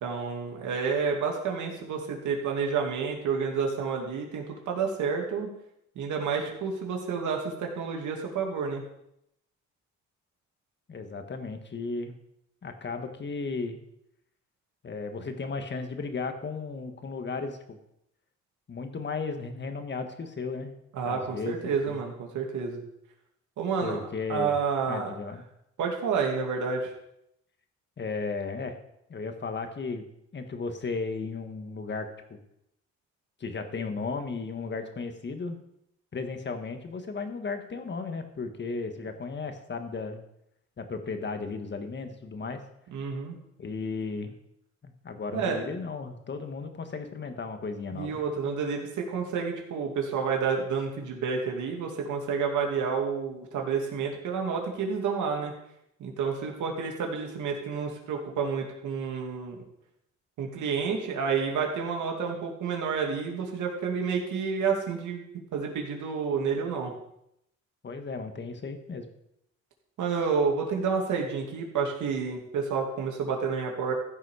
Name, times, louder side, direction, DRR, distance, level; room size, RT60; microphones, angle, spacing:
voice 1, 0.0-5.5 6.0-8.8 20.9-22.8 23.6-24.0 24.3-25.1 25.8-26.9 42.9-43.4 45.3-45.6 47.9-55.5 56.0-59.6 60.4-65.2 65.5-66.9 70.0-73.9, right 5 dB, 75° right, 1 dB, 2.6 m, -29 dB
voice 2, 10.9-12.1 12.6-13.8 14.8-17.8 18.7-20.7 21.0-22.0 23.8-24.6 24.9-25.4 28.0-28.8 29.1-30.1 30.3-32.4 33.4-35.6 36.1-40.2 40.8-42.6 43.6-44.4 44.8-48.2 67.8-69.1, left 4 dB, 35° left, 7 dB, 1.6 m, -35 dB
14.5 x 5.7 x 5.0 m, 0.79 s
cardioid pair, 90°, 30 cm